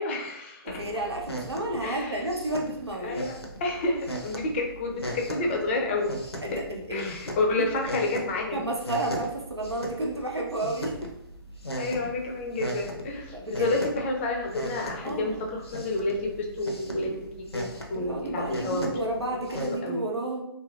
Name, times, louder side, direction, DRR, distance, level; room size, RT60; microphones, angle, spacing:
voice 1, 0.0-0.8 1.8-2.2 2.9-6.2 6.9-8.7 11.8-18.9 19.6-20.0, left 2 dB, 30° left, 1 dB, 0.4 m, -30 dB
sound 1, 0.7-19.7, equal, 85° left, 0.6 m, -38 dB
voice 2, 0.7-3.2 6.4-7.1 7.6-7.7 8.5-10.9 13.3-13.7 15.0-15.4 17.9-20.4, right 2 dB, 90° right, -1 dB, 0.7 m, -31 dB
2.8 x 2.6 x 2.4 m, 0.80 s
figure-of-eight pair, 125°, 13 cm